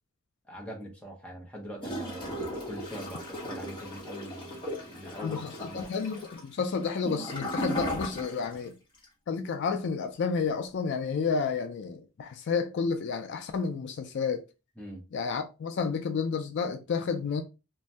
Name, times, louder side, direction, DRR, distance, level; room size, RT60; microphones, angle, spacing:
voice 1, 0.5-5.9 14.8-15.0, equal, 5° left, 0.6 m, -43 dB
Gurgling / Toilet flush, 1.8-8.6 8.9-9.0, equal, 20° left, 1.0 m, -36 dB
voice 2, 5.2-8.7 9.3-14.4 15.1-17.4, left 5 dB, 50° left, 0.3 m, -31 dB
2.6 x 2.1 x 3.2 m
head